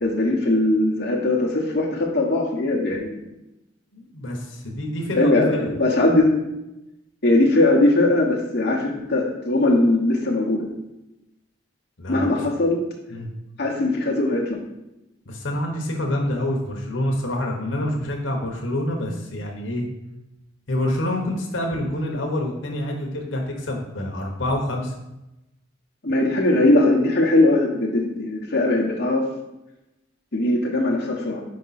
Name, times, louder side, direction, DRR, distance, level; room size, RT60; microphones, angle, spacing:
voice 1, 0.0-3.2 5.1-6.3 7.2-10.7 12.1-12.8 13.6-14.6 26.0-29.3 30.3-31.4, left 2 dB, 55° left, -3 dB, 1.1 m, -20 dB
voice 2, 3.9-5.7 12.0-12.4 13.1-13.3 15.3-19.8 20.7-24.9, left 1 dB, 90° left, 1 dB, 1.0 m, -27 dB
5.3 x 4.8 x 4.1 m, 0.93 s
head